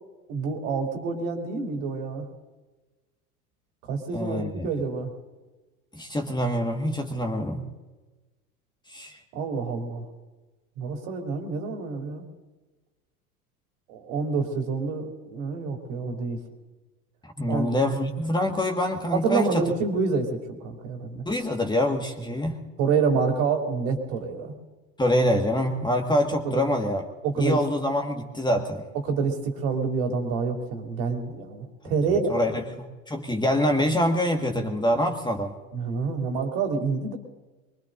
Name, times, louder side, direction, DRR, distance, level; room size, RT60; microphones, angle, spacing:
voice 1, 0.3-2.2 3.9-5.1 9.3-10.0 10.8-12.2 13.9-16.4 17.5-17.7 19.1-21.2 22.8-24.5 26.4-26.6 27.2-27.6 29.1-32.3 35.7-37.2, right 5 dB, 60° right, 2 dB, 3.0 m, -27 dB
voice 2, 4.1-4.7 5.9-7.6 8.9-9.2 17.4-19.6 21.2-22.6 25.0-27.0 27.4-28.8 32.3-32.6 33.1-35.5, left 1 dB, 10° left, 3 dB, 1.7 m, -25 dB
23.5 x 22.5 x 2.7 m, 1.2 s
hypercardioid pair, 80°, 45 cm